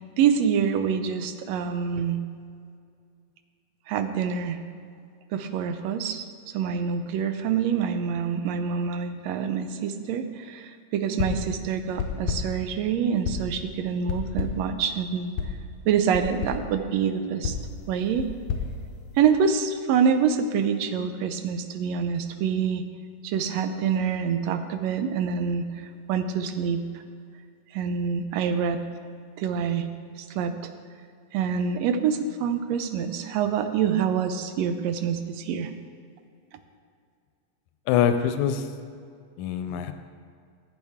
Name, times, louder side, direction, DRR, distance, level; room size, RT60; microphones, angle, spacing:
voice 1, 0.2-2.2 3.9-4.6 5.3-15.4 15.8-17.6 17.9-18.3 19.2-22.8 23.2-27.0 27.7-28.8 29.4-29.9 30.2-30.7 31.3-35.7, right 7 dB, 75° right, 9 dB, 1.7 m, -26 dB
sound 1, 11.2-11.6 12.0-12.6 13.2-13.6 14.1-14.7 15.4-15.6 16.1-16.7 17.4-19.5, left 6 dB, 70° left, 2.0 m, -31 dB
voice 2, 37.9-38.7 39.4-39.9, left 8 dB, 90° left, 9 dB, 2.0 m, -24 dB
15.0 x 8.3 x 3.6 m, 2.3 s
omnidirectional pair, 3.3 m